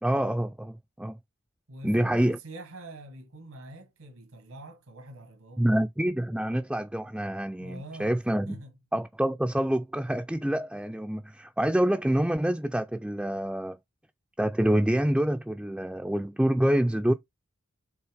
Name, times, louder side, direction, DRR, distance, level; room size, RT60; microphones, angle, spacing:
voice 1, 0.0-1.2 1.8-2.4 5.6-8.6 8.9-13.8 14.4-17.1, right 1 dB, 5° right, 0.3 m, -26 dB
voice 2, 1.7-5.7 7.6-8.2 8.5-8.7, right 1 dB, 85° right, 1.5 m, -45 dB
5.7 x 3.6 x 4.9 m
head